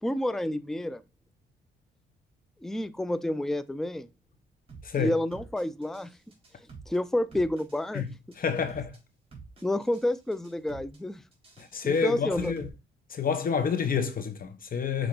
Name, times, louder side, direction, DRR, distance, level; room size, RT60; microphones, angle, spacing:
voice 1, 0.0-1.0 2.6-4.1 5.0-6.1 6.9-8.1 9.6-11.2 11.8-12.5, left 1 dB, ahead, 0.5 m, -29 dB
sound 1, 4.7-5.0 5.3-6.1 6.3-7.0 7.3-8.0 8.3-9.0 9.3-10.1 10.3-11.0 11.3-12.7, right 4 dB, 30° right, 3.8 m, -47 dB
voice 2, 4.8-5.1 7.9-8.0 8.4-8.9 11.6-12.7 13.1-15.1, left 6 dB, 45° left, 1.2 m, -28 dB
6.6 x 4.8 x 3.9 m
cardioid pair, 90°, 20 cm